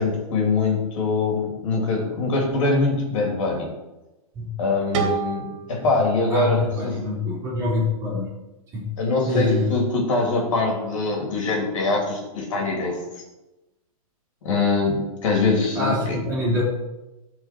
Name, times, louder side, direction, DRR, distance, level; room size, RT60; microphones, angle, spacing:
voice 1, 0.0-3.7 4.6-7.0 9.0-13.0 14.4-16.2, left 3 dB, 55° left, 0 dB, 3.0 m, -23 dB
sound 1, 4.9-7.8, right 5 dB, 50° right, 2.3 m, -31 dB
voice 2, 6.3-8.3 8.7-8.9 9.2-9.8 15.8-16.6, left 2 dB, 15° right, -7 dB, 3.7 m, -25 dB
12.5 x 4.9 x 4.5 m, 1.0 s
hypercardioid pair, 165°, 19 cm